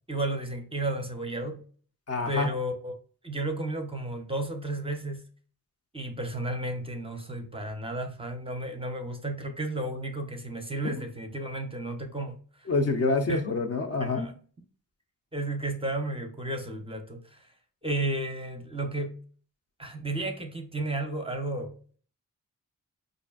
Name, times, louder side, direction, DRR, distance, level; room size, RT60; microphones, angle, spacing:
voice 1, 0.1-1.6 2.3-2.9 3.2-5.2 5.9-12.4 13.3-13.5 14.0-14.3 15.3-17.5 17.8-19.1 19.8-21.8, right 2 dB, 15° right, 5 dB, 0.6 m, -33 dB
voice 2, 2.1-2.5 10.8-11.0 12.7-14.3, left 3 dB, 45° left, 5 dB, 0.5 m, -27 dB
4.6 x 2.5 x 2.3 m, 0.43 s
cardioid pair, 90°, 35 cm